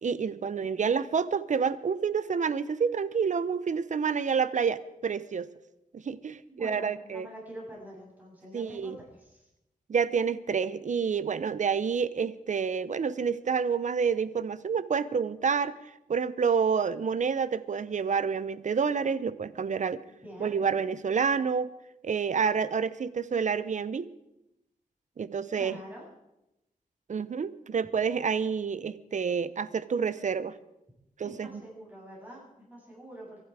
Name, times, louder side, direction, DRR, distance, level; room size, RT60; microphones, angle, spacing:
voice 1, 0.0-5.5 5.9-7.3 8.5-9.0 9.9-15.8 16.1-20.0 20.4-21.7 22.0-24.1 25.2-25.8 27.1-30.6 31.2-31.5, right 6 dB, 60° right, 16 dB, 0.7 m, -28 dB
voice 2, 6.5-9.5 20.1-20.5 25.5-26.1 27.7-27.9 31.2-33.4, right 1 dB, 10° right, -5 dB, 8.0 m, -46 dB
23.5 x 12.0 x 4.8 m, 0.91 s
wide cardioid pair, 115°, 14 cm